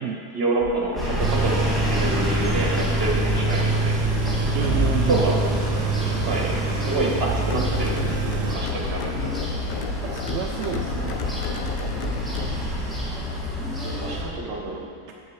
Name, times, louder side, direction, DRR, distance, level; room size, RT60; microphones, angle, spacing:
voice 1, 0.3-4.0 5.1-5.3 6.2-9.3 13.8-14.8, right 2 dB, 45° right, -2 dB, 1.7 m, -27 dB
sound 1, 0.6-12.6, left 5 dB, 55° left, 0.6 m, -34 dB
sound 2, 1.0-14.2, equal, ahead, 1.8 m, -28 dB
Tools, 1.2-8.5, right 3 dB, 80° right, 1.1 m, -26 dB
voice 2, 4.5-5.4 10.0-11.2, right 7 dB, 65° right, 2 dB, 0.8 m, -29 dB
8.2 x 7.0 x 6.4 m, 2.3 s
omnidirectional pair, 1.5 m